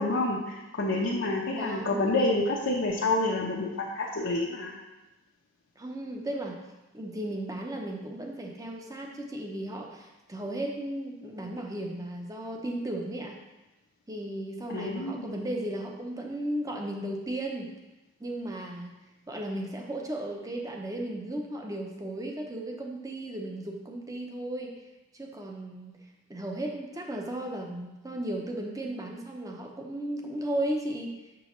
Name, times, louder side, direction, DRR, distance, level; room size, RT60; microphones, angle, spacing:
voice 1, 0.0-4.7 14.7-15.4, left 2 dB, 80° left, -4 dB, 0.8 m, -28 dB
voice 2, 1.5-2.1 5.8-6.6 6.9-13.4 14.1-17.7 18.2-18.9 19.3-24.7 25.1-26.0 26.3-31.1, right 1 dB, 15° right, 1 dB, 0.7 m, -35 dB
6.1 x 6.1 x 3.1 m, 1.0 s
head